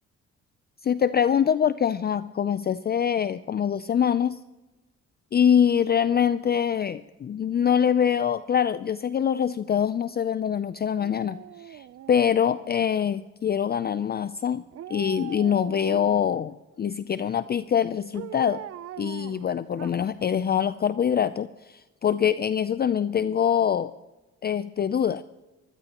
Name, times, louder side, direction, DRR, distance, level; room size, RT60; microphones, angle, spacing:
voice 1, 0.8-4.4 5.3-14.6 14.9-18.6 19.0-23.9 24.4-25.2, left 8 dB, 35° left, 14 dB, 0.4 m, -24 dB
Dog, 11.0-13.0 14.7-16.4 18.1-20.2 20.6-20.7, right 12 dB, 50° right, 0.5 m, -41 dB
22.5 x 16.0 x 3.0 m, 1.1 s
cardioid pair, 90°, 30 cm